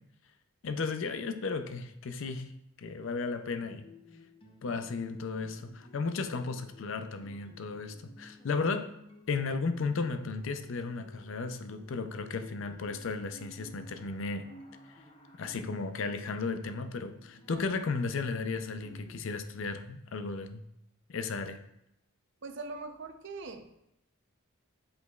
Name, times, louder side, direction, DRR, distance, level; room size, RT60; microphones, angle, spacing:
voice 1, 0.6-2.5 2.8-3.9 4.6-8.9 9.3-14.4 15.4-20.6 21.1-21.6, left 4 dB, 60° left, 8 dB, 0.4 m, -34 dB
sound 1, 3.6-19.4, left 1 dB, 25° left, 0.7 m, -55 dB
voice 2, 22.4-23.7, right 3 dB, 55° right, 6 dB, 0.6 m, -42 dB
7.9 x 5.2 x 2.3 m, 0.84 s
head